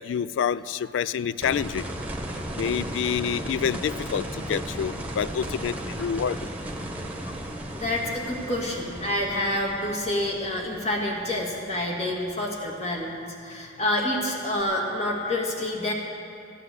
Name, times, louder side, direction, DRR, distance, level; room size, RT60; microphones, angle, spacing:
voice 1, 0.0-1.9 2.6-6.4, left 7 dB, 80° left, 17 dB, 0.3 m, -27 dB
sound 1, 1.4-12.3 14.6-14.7, right 1 dB, 10° right, 1.3 m, -35 dB
voice 2, 7.7-15.9, left 1 dB, 35° left, -1 dB, 2.2 m, -28 dB
14.5 x 9.7 x 7.9 m, 2.6 s
head